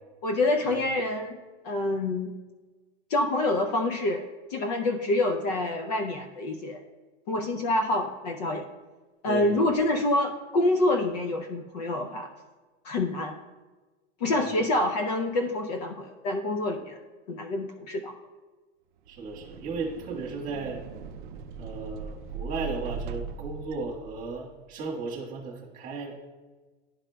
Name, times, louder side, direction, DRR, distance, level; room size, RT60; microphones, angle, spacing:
voice 1, 0.2-1.4 1.6-2.3 3.1-6.8 7.3-8.7 9.2-12.3 12.8-13.4 14.2-17.0 17.3-18.1, left 2 dB, 35° left, 5 dB, 0.4 m, -27 dB
voice 2, 9.2-9.8 14.3-14.6 19.1-20.8 21.6-26.2, right 3 dB, 25° right, -2 dB, 1.4 m, -35 dB
sound 1, 19.0-24.6, right 6 dB, 45° right, 0.4 m, -39 dB
11.5 x 5.0 x 2.2 m, 1.3 s
supercardioid pair, 160°, 35 cm